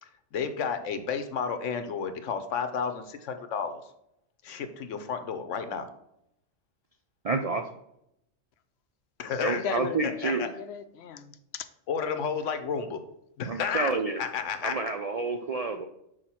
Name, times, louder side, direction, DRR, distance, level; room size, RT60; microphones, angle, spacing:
voice 1, 0.0-3.8 4.4-5.9 9.2-9.6 10.0-10.5 11.9-13.0 13.4-13.9 14.2-14.8, left 6 dB, 90° left, 9 dB, 1.1 m, -31 dB
voice 2, 7.2-7.7 9.4-10.5 13.5-14.2 14.6-15.9, right 3 dB, 65° right, 5 dB, 0.3 m, -29 dB
voice 3, 9.5-11.7, left 7 dB, 65° left, 11 dB, 0.8 m, -37 dB
6.4 x 4.7 x 4.3 m, 0.79 s
omnidirectional pair, 1.2 m